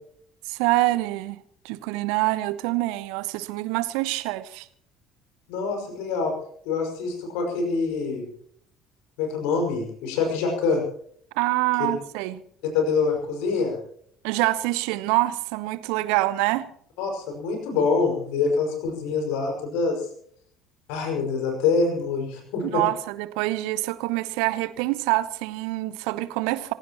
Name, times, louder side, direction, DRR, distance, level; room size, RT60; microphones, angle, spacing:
voice 1, 0.5-4.7 11.3-12.4 14.2-16.7 22.6-26.7, right 18 dB, 60° right, 16 dB, 0.9 m, -26 dB
voice 2, 5.5-6.3 6.7-8.3 9.2-10.8 12.7-13.8 17.0-20.1 20.9-22.8, left 4 dB, 60° left, 3 dB, 5.6 m, -25 dB
26.5 x 16.0 x 3.0 m, 0.63 s
figure-of-eight pair, 60°, 0 cm